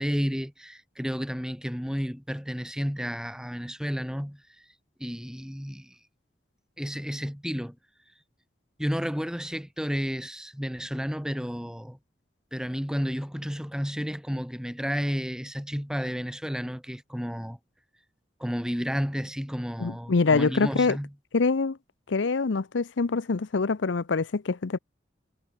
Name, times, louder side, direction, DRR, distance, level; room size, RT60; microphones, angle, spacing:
voice 1, 0.0-4.4 5.0-6.0 6.8-7.8 8.8-12.0 12.5-17.6 18.4-21.1, equal, 5° right, 6.0 m, -31 dB
voice 2, 19.8-21.0 21.3-21.8 22.1-24.8, left 4 dB, 85° left, 0.7 m, -25 dB
head